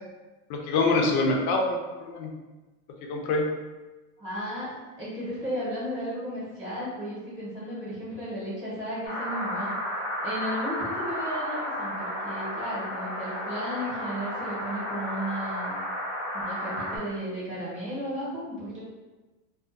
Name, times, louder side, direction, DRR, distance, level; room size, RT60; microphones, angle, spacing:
voice 1, 0.5-2.3 3.1-3.5, left 3 dB, 70° left, 1 dB, 0.7 m, -25 dB
voice 2, 4.2-9.7 10.2-15.8 16.3-18.8, equal, 10° right, -11 dB, 1.0 m, -34 dB
sound 1, 9.1-17.0, equal, 30° left, 0.6 m, -32 dB
2.4 x 2.4 x 2.5 m, 1.2 s
supercardioid pair, 140°, 47 cm